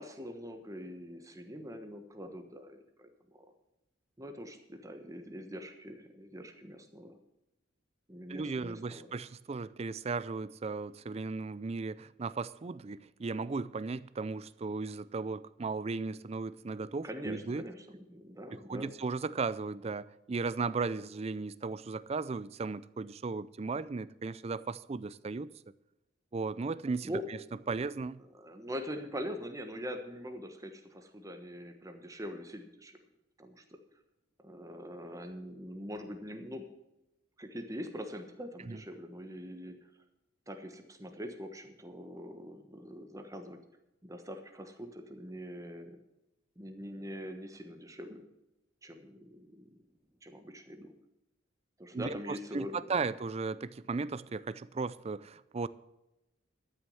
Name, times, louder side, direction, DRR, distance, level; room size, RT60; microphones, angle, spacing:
voice 1, 0.0-3.5 4.2-7.2 8.1-9.1 17.0-18.9 27.0-27.2 28.3-33.0 33.4-33.8 34.4-36.6 37.4-39.8 40.5-43.6 44.0-46.0 46.6-48.2 48.8-49.8 50.2-50.9 51.8-52.9, equal, 15° right, 1.2 m, -43 dB
voice 2, 8.3-17.6 18.7-25.5 26.3-27.4 27.7-28.2 38.7-38.8 51.9-55.7, right 4 dB, 30° right, 0.4 m, -36 dB
12.5 x 6.4 x 7.8 m
head